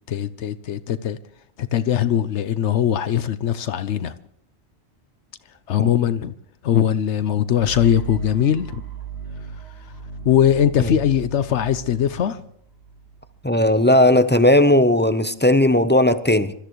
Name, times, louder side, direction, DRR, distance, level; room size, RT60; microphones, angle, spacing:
voice 1, 0.1-1.2 1.6-4.1 5.7-6.3 6.6-8.8 10.2-12.4, left 10 dB, 80° left, 1.0 m, -20 dB
sound 1, 7.6-13.5, right 6 dB, 60° right, 2.6 m, -37 dB
voice 2, 13.4-16.5, left 1 dB, 10° left, 0.6 m, -16 dB
26.0 x 13.5 x 3.1 m
omnidirectional pair, 1.2 m